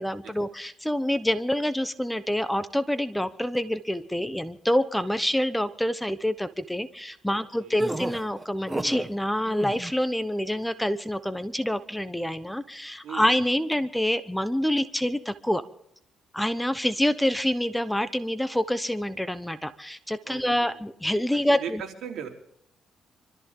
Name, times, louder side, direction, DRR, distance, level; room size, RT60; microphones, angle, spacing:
voice 1, 0.0-15.6 16.3-21.8, left 1 dB, 5° left, 12 dB, 1.0 m, -27 dB
voice 2, 7.3-7.8 13.0-13.3 20.2-20.8 21.3-22.3, right 8 dB, 75° right, 2 dB, 3.8 m, -39 dB
sound 1, 7.8-9.1 9.5-9.9, right 1 dB, 15° right, 1.5 m, -31 dB
26.0 x 13.5 x 3.8 m, 0.72 s
cardioid pair, 90°, 0 cm